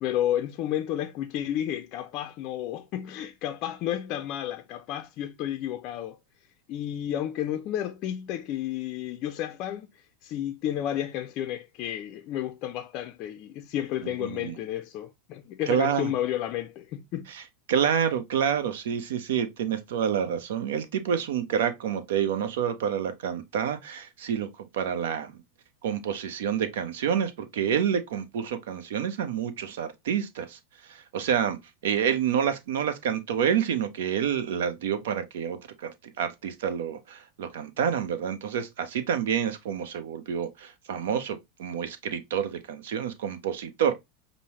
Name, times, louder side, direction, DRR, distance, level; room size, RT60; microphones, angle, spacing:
voice 1, 0.0-6.2 6.7-17.3, left 11 dB, 50° left, 0.4 m, -31 dB
voice 2, 14.0-14.6 15.7-16.1 17.3-17.4 17.7-25.4 25.8-31.6 31.8-43.9, right 8 dB, 75° right, 0.7 m, -28 dB
5.3 x 2.0 x 2.9 m
hypercardioid pair, 100°, 0 cm